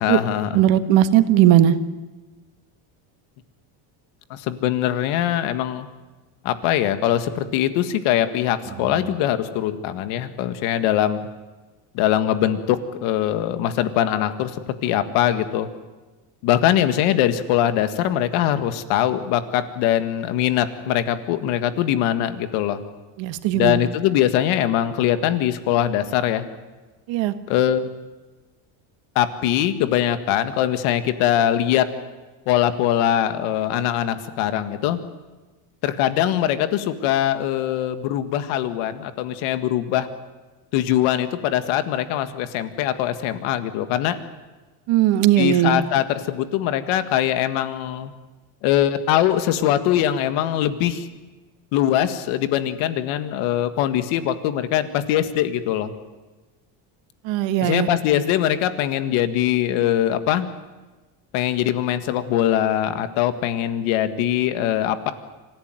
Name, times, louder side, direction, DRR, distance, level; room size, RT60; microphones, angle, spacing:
voice 1, 0.0-0.6 4.3-5.9 6.4-11.2 11.9-15.7 16.4-22.8 23.5-26.5 27.5-27.8 29.2-31.8 32.5-35.0 35.8-40.1 40.7-44.2 45.4-48.1 48.6-51.1 51.7-55.9 57.6-60.5 61.3-65.1, left 11 dB, 80° left, 10 dB, 1.9 m, -22 dB
voice 2, 0.5-1.8 23.2-23.8 27.1-27.3 44.9-45.8 57.2-57.9, right 12 dB, 70° right, 9 dB, 1.7 m, -17 dB
26.0 x 16.0 x 9.4 m, 1.2 s
cardioid pair, 125°, 47 cm